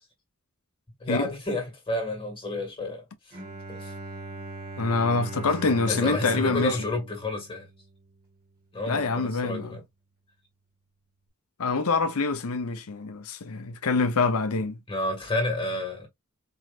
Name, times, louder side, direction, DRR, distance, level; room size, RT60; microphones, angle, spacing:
voice 1, 1.0-3.4 3.7-4.0 5.9-7.7 8.7-9.8 14.9-16.1, left 1 dB, 25° left, 2.0 m, -30 dB
Bowed string instrument, 3.3-8.3, right 2 dB, 45° right, 1.4 m, -39 dB
voice 2, 4.8-6.8 8.9-9.8 11.6-14.8, left 4 dB, 80° left, 0.7 m, -25 dB
4.6 x 3.1 x 2.4 m
head